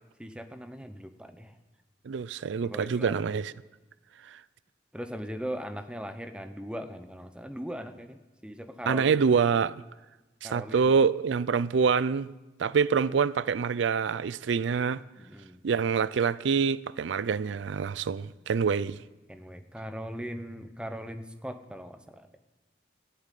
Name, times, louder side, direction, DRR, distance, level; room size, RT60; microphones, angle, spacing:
voice 1, 0.2-1.6 2.6-3.4 4.9-9.1 10.4-10.9 15.2-15.6 19.3-22.3, equal, 5° right, 0.8 m, -39 dB
voice 2, 2.1-3.5 4.2-4.4 8.9-9.8 10.4-12.3 12.6-15.0 15.6-19.0, right 6 dB, 80° right, 0.4 m, -26 dB
13.0 x 11.5 x 9.2 m
head